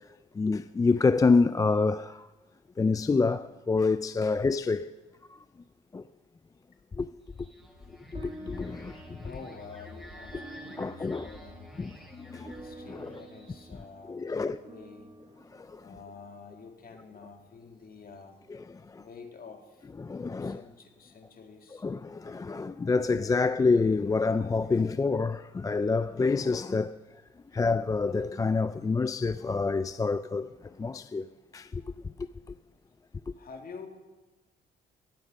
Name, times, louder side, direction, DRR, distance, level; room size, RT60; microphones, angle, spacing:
voice 1, 0.4-2.3 2.8-4.9 5.9-6.0 7.0-7.1 8.1-9.2 10.8-11.3 11.8-12.5 12.9-13.1 14.1-14.6 15.5-15.8 18.5-18.6 18.9-19.0 20.0-20.6 21.8-27.0 27.5-30.5 30.8-31.3 31.5-31.8, left 4 dB, 15° left, 0.3 m, -27 dB
sound 1, 7.3-13.9, left 1 dB, ahead, 4.4 m, -49 dB
sound 2, 8.1-16.8, right 2 dB, 30° right, 1.5 m, -50 dB
voice 2, 9.2-11.7 12.2-15.1 15.8-18.4 19.0-19.9 20.4-21.9 22.8-23.7 24.2-25.1 33.3-33.9, left 5 dB, 50° left, 2.2 m, -49 dB
18.5 x 8.7 x 5.3 m
cardioid pair, 90°, 20 cm